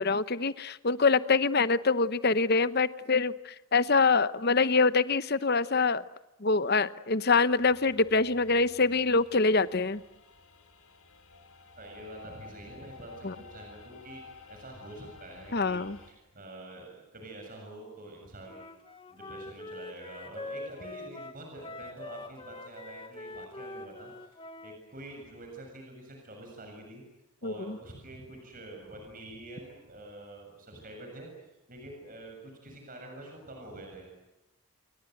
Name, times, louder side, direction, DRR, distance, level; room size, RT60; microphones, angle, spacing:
voice 1, 0.0-6.0 6.4-10.0 13.2-13.3 15.5-16.0 27.4-27.8, left 4 dB, 45° left, 14 dB, 0.9 m, -25 dB
sound 1, 7.5-16.1, left 4 dB, 80° left, 4.9 m, -53 dB
voice 2, 11.7-14.2 14.5-18.7 19.1-27.0 27.4-34.1, right 1 dB, 40° right, 2 dB, 7.3 m, -46 dB
Wind instrument woodwind instrument, 18.4-24.8, left 2 dB, 25° left, 1.5 m, -44 dB
29.0 x 24.0 x 8.0 m, 0.97 s
head